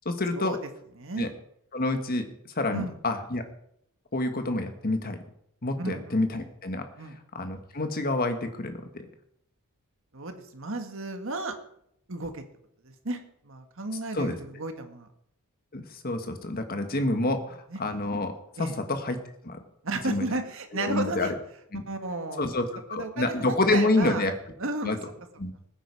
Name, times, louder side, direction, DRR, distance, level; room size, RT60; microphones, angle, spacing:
voice 1, 0.0-0.6 1.2-1.3 1.7-3.4 4.1-5.2 5.6-6.8 7.3-9.0 14.1-14.4 15.7-18.3 18.6-19.6 20.1-20.3 20.7-21.3 21.7-21.8 22.4-24.3 24.8-25.0 25.4-25.5, left 2 dB, 40° left, 7 dB, 1.5 m, -28 dB
voice 2, 1.0-1.3 2.7-2.9 5.8-6.2 7.0-7.2 10.1-11.6 12.1-12.4 12.8-15.1 17.7-17.8 18.6-18.7 19.8-21.3 21.9-24.3 24.6-25.0, right 2 dB, 60° right, 6 dB, 1.8 m, -34 dB
21.0 x 9.0 x 4.8 m, 0.72 s
head